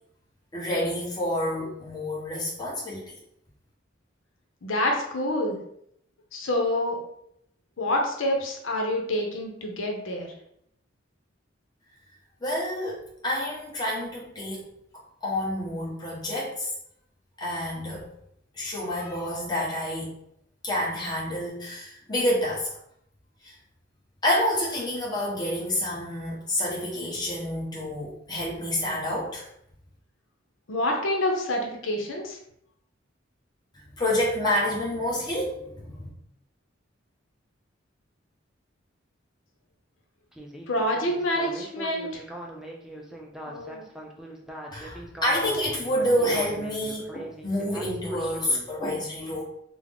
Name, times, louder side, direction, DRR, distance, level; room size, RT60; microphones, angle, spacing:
voice 1, 0.5-3.1 12.4-14.6 15.2-16.7 17.4-18.1 18.6-20.2 20.6-22.7 23.4-23.5 24.2-29.4 34.0-36.1 44.7-49.4, left 1 dB, 20° left, -5 dB, 0.9 m, -28 dB
voice 2, 4.6-5.6 6.3-7.0 7.8-10.3 30.7-32.4 40.7-42.2 43.5-43.8, left 1 dB, 90° left, 1 dB, 0.6 m, -27 dB
Speech synthesizer, 40.3-48.6, equal, ahead, 0.4 m, -41 dB
3.5 x 2.0 x 3.5 m, 0.74 s
head